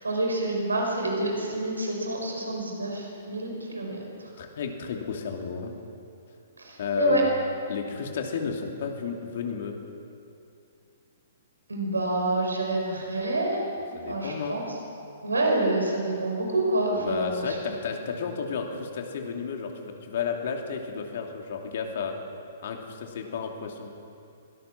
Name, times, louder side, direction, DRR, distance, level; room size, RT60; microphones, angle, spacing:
voice 1, 0.0-4.0 6.6-7.2 11.7-13.6 14.1-14.7 15.2-17.4, right 2 dB, 80° right, 0 dB, 5.6 m, -27 dB
voice 2, 4.4-5.7 6.8-7.3 7.7-9.8 13.9-14.6 16.9-22.1 22.6-23.9, left 6 dB, 55° left, 3 dB, 2.8 m, -32 dB
24.5 x 18.0 x 6.1 m, 2.6 s
figure-of-eight pair, 115°, 0 cm